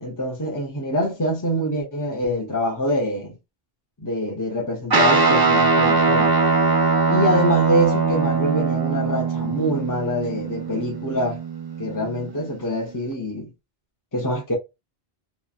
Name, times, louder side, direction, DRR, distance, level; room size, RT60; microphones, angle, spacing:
voice 1, 0.0-3.3 4.0-6.3 7.1-11.4 11.8-13.5 14.1-14.5, equal, 20° left, 0.8 m, -25 dB
Guitar, 4.9-12.5, right 4 dB, 30° right, 0.4 m, -21 dB
3.0 x 2.5 x 2.4 m
omnidirectional pair, 1.0 m